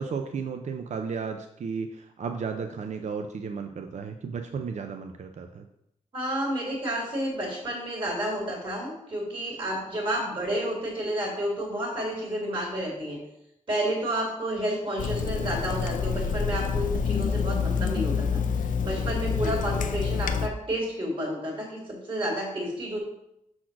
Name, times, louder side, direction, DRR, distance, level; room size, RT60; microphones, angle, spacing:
voice 1, 0.0-5.6 19.3-19.6, right 5 dB, 60° right, 5 dB, 0.5 m, -34 dB
voice 2, 6.1-13.2 13.7-23.0, right 1 dB, 35° right, -2 dB, 2.3 m, -30 dB
Water tap faucet / Sink (filling or washing), 15.0-20.5, left 6 dB, 75° left, 0.5 m, -27 dB
6.1 x 4.2 x 5.8 m, 0.80 s
wide cardioid pair, 120°, 14 cm